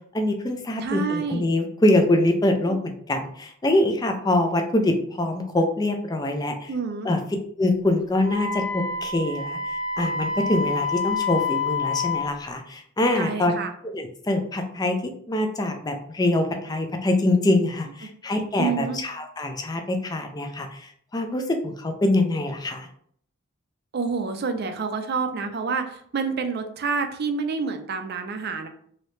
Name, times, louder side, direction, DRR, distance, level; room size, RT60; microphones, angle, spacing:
voice 1, 0.1-6.7 7.0-7.2 7.6-13.5 13.8-15.0 15.3-22.9, left 1 dB, 20° left, 4 dB, 0.3 m, -24 dB
voice 2, 0.8-1.5 2.7-2.8 6.7-7.1 13.2-13.7 18.6-19.0 23.9-28.7, right 5 dB, 45° right, 7 dB, 0.4 m, -28 dB
Wind instrument woodwind instrument, 8.2-12.3, left 4 dB, 65° left, 0.8 m, -27 dB
3.1 x 2.7 x 3.1 m, 0.62 s
head